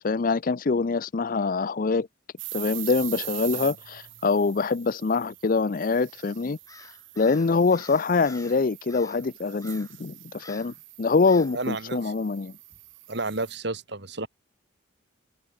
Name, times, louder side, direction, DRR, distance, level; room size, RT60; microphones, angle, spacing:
voice 1, 0.0-2.1 2.5-6.6 7.2-12.5, left 4 dB, 45° left, 0.5 m, -24 dB
sound 1, 2.4-13.6, right 17 dB, 75° right, 2.1 m, -42 dB
Crow, 6.7-8.6 8.9-9.3 9.6-10.0 10.4-10.8 11.3-11.6, left 3 dB, 15° left, 1.9 m, -49 dB
voice 2, 11.5-12.1 13.1-14.3, right 2 dB, 60° right, 2.6 m, -31 dB
head